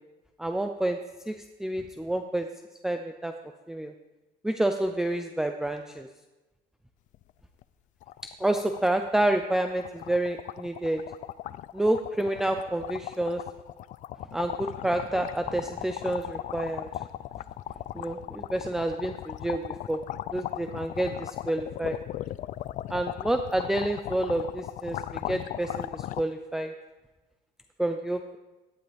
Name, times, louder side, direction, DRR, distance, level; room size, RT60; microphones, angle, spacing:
voice 1, 0.4-1.0 1.3-1.4 1.6-2.5 2.8-3.3 3.7-3.9 4.4-6.1 8.4-11.0 11.7-13.4 14.3-16.9 17.9-20.0 20.3-22.0 22.9-26.7 27.8-28.4, right 1 dB, 5° right, 5 dB, 0.5 m, -29 dB
sound 1, 7.1-7.3 7.6-7.7 8.0-26.2, left 13 dB, 50° left, 0.4 m, -38 dB
17.5 x 11.5 x 3.4 m, 1.1 s
cardioid pair, 165°, 16 cm